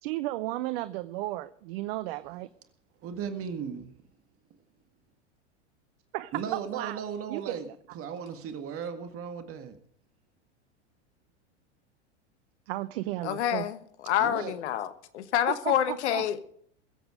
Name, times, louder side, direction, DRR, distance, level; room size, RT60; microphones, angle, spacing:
voice 1, 0.0-2.5 6.1-7.0 7.3-7.6 12.7-13.6 15.6-16.2, right 17 dB, 60° right, 0.7 m, -34 dB
voice 2, 3.0-3.9 6.3-7.7 7.9-9.8 14.2-14.5, right 7 dB, 40° right, 1.9 m, -36 dB
voice 3, 13.2-13.8 14.0-16.4, left 11 dB, 70° left, 1.3 m, -27 dB
21.5 x 8.1 x 5.0 m
hypercardioid pair, 95°, 35 cm